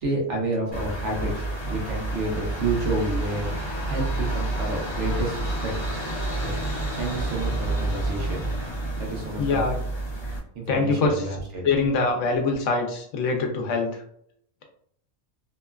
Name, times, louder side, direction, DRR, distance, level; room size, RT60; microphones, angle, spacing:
voice 1, 0.0-3.5 3.9-5.8 6.4-6.5 7.0-8.4 9.0-9.6 10.5-11.6, right 2 dB, 65° right, 0 dB, 1.0 m, -29 dB
sound 1, 0.7-10.4, right 2 dB, 25° left, 0.6 m, -29 dB
voice 2, 9.4-9.8 10.7-11.3 11.6-13.9, left 3 dB, 75° left, 3 dB, 0.9 m, -23 dB
2.9 x 2.2 x 2.2 m, 0.66 s
omnidirectional pair, 1.4 m